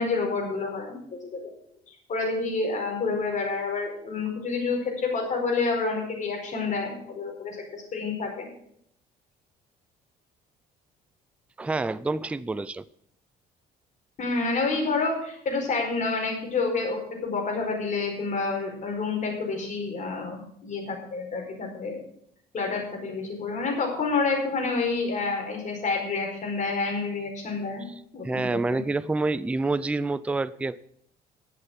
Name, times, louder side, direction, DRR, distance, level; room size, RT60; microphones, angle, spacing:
voice 1, 0.0-1.5 1.9-8.5 14.2-22.0 22.5-27.9 28.1-28.8, left 4 dB, 45° left, 1 dB, 4.7 m, -29 dB
voice 2, 11.6-12.8 28.2-30.8, right 3 dB, 5° right, 16 dB, 0.4 m, -27 dB
12.0 x 7.8 x 7.2 m, 0.67 s
cardioid pair, 110°, 17 cm